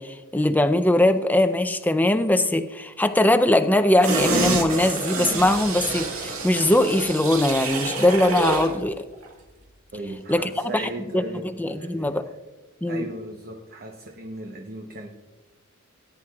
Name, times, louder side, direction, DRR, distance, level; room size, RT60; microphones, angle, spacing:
voice 1, 0.0-9.0 10.3-12.2 12.8-13.1, left 1 dB, 10° left, 9 dB, 0.5 m, -21 dB
sound 1, 4.0-8.8 9.1-9.2, right 3 dB, 70° right, 2.1 m, -27 dB
voice 2, 9.9-12.2 12.9-15.1, right 2 dB, 45° right, 2 dB, 0.9 m, -37 dB
18.5 x 10.5 x 2.4 m, 1.2 s
head